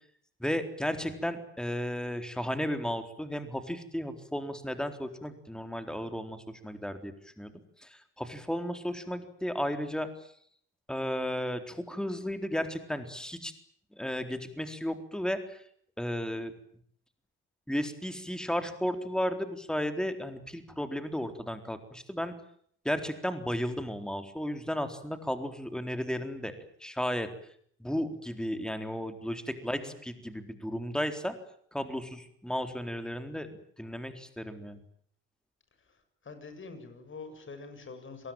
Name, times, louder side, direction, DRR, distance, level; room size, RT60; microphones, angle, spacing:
voice 1, 0.4-7.5 7.8-10.3 10.9-13.5 13.9-15.6 16.0-16.5 17.7-22.3 22.8-27.3 27.8-31.3 31.7-33.5 33.8-34.8, equal, ahead, 8 dB, 4.0 m, -34 dB
voice 2, 29.6-30.0 35.8-38.3, left 4 dB, 40° left, 9 dB, 7.3 m, -46 dB
27.0 x 19.0 x 9.1 m, 0.64 s
supercardioid pair, 65°, 30 cm